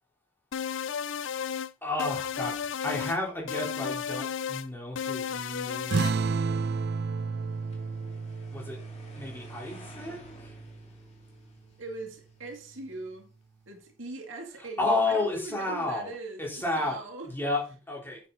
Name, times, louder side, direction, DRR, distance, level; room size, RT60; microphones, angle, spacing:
sound 1, 0.5-1.7 2.0-3.2 3.5-4.7 5.0-6.2, left 7 dB, 65° left, 0.5 m, -33 dB
voice 1, 1.8-6.4 8.5-8.8 9.2-10.5 14.6-17.0 17.2-18.2, left 2 dB, 10° left, 3.5 m, -32 dB
sound 2, 5.9-10.9, right 4 dB, 55° right, 0.4 m, -32 dB
sound 3, 7.2-13.3, left 1 dB, 35° left, 2.7 m, -53 dB
voice 2, 11.8-13.3 13.7-17.3, right 2 dB, 75° right, 2.4 m, -40 dB
9.1 x 7.4 x 3.8 m
head